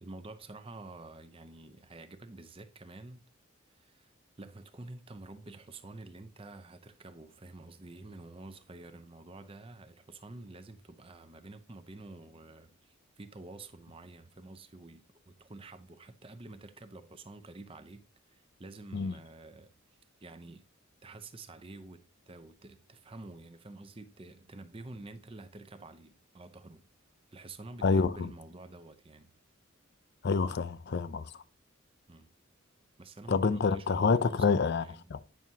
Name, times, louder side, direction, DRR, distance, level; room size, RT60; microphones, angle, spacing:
voice 1, 0.0-3.2 3.7-4.1 4.4-18.0 18.3-19.7 20.2-20.6 21.0-22.0 22.3-26.9 27.3-29.3 32.1-32.3 33.0-34.2 34.5-35.0, right 2 dB, 25° right, 0.6 m, -49 dB
voice 2, 27.8-28.3 30.2-31.4 33.3-35.2, left 4 dB, 50° left, 0.4 m, -28 dB
9.1 x 6.0 x 2.8 m
head